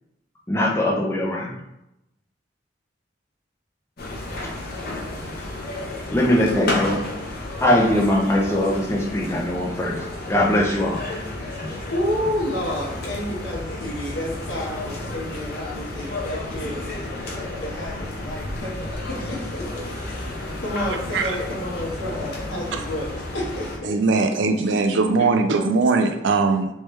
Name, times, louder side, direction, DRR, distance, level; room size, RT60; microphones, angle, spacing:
voice 1, 0.5-1.5 6.1-7.0 7.6-10.0 10.3-11.0, left 1 dB, 15° left, -2 dB, 0.5 m, -21 dB
sound 1, 4.0-23.8, left 2 dB, 55° left, 0.8 m, -32 dB
voice 2, 11.9-19.7 20.0-20.3 20.6-23.1 23.3-23.9 24.7-24.9 25.5-25.6, left 1 dB, 85° left, -4 dB, 1.2 m, -30 dB
voice 3, 23.8-26.7, right 3 dB, 75° right, 7 dB, 0.4 m, -20 dB
3.3 x 3.1 x 3.1 m, 0.87 s
head